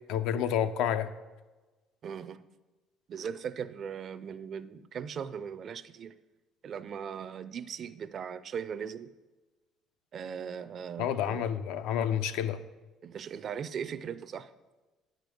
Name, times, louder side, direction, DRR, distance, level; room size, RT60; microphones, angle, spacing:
voice 1, 0.1-1.1 11.0-12.6, left 9 dB, 85° left, 0.6 m, -29 dB
voice 2, 2.0-2.4 3.1-6.2 6.6-9.1 10.1-11.5 13.0-14.5, right 7 dB, 35° right, 0.4 m, -39 dB
9.5 x 5.2 x 7.7 m
cardioid pair, 170°, 0 cm